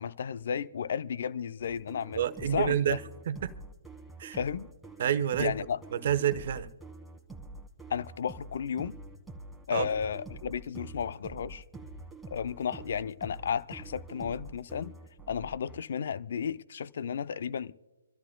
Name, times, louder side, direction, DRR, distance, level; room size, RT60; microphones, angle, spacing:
voice 1, 0.0-2.2 2.5-3.0 4.3-4.7 5.4-5.8 7.9-9.0 9.7-11.6 12.3-14.9 15.3-17.7, left 7 dB, 60° left, 0.5 m, -33 dB
sound 1, 1.6-15.8, right 2 dB, ahead, 1.5 m, -46 dB
voice 2, 2.2-3.0 3.3-3.5 4.2-4.4 5.0-5.5 5.9-6.7 9.7-9.9, right 10 dB, 50° right, 0.9 m, -28 dB
26.0 x 13.5 x 2.2 m
figure-of-eight pair, 130°, 0 cm